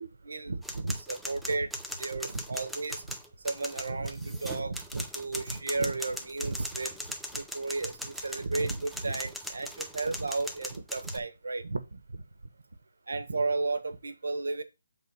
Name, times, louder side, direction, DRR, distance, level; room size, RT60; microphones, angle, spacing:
voice 1, 0.0-1.7 2.0-3.2 3.4-6.9 7.3-12.2 13.1-14.6, right 3 dB, 80° right, 1.3 m, -33 dB
sound 1, 0.6-11.2, equal, ahead, 0.5 m, -40 dB
6.3 x 3.8 x 5.4 m
hypercardioid pair, 165°, 0 cm